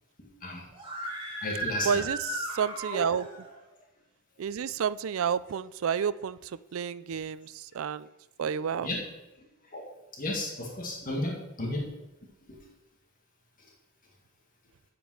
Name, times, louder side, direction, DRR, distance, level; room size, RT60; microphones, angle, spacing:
voice 1, 0.2-0.6 1.4-2.0 2.9-3.0 8.8-9.1 9.7-9.8 10.2-11.9 12.5-12.6, left 1 dB, 40° left, -1 dB, 1.9 m, -33 dB
Screaming, 0.7-3.5, right 1 dB, 25° right, 1.9 m, -35 dB
voice 2, 1.8-3.2 4.4-8.1 8.4-8.9, right 7 dB, 65° right, 16 dB, 0.4 m, -30 dB
7.7 x 7.0 x 6.2 m, 1.0 s
head